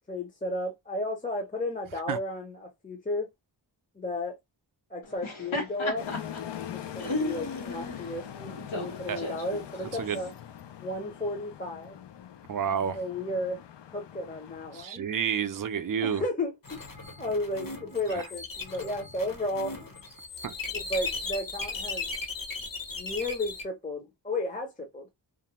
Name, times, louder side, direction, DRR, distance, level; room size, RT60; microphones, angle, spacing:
voice 1, 0.1-3.3 4.0-4.4 4.9-6.1 6.6-10.3 10.8-12.0 12.9-13.6 13.9-15.1 16.0-16.8 17.2-19.7 20.7-22.1 22.9-25.1, left 1 dB, 15° left, 0.6 m, -33 dB
Laughter, 5.0-10.3, left 2 dB, 85° left, 1.1 m, -36 dB
sound 1, 6.0-14.8, left 10 dB, 65° left, 0.5 m, -43 dB
voice 2, 12.5-13.0 14.7-16.2 18.1-18.2 20.4-20.5, right 8 dB, 45° right, 0.5 m, -30 dB
sound 2, 16.6-23.6, left 3 dB, 45° left, 1.0 m, -37 dB
2.5 x 2.1 x 2.9 m
wide cardioid pair, 90°, 46 cm